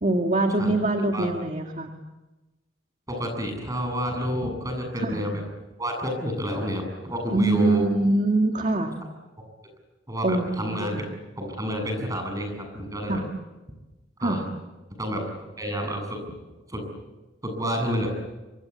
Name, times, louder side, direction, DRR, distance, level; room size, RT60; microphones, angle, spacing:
voice 1, 0.0-1.9 5.0-5.2 7.3-9.0 10.2-11.0 13.1-13.2 14.2-14.4, right 2 dB, 35° right, 4 dB, 2.0 m, -24 dB
voice 2, 3.1-5.4 5.8-7.9 10.1-11.0 11.4-13.2 14.2-14.5 15.0-15.3 15.6-16.2 16.7-16.8 17.4-18.1, equal, 15° right, 4 dB, 7.6 m, -29 dB
27.5 x 25.0 x 8.4 m, 1.1 s
head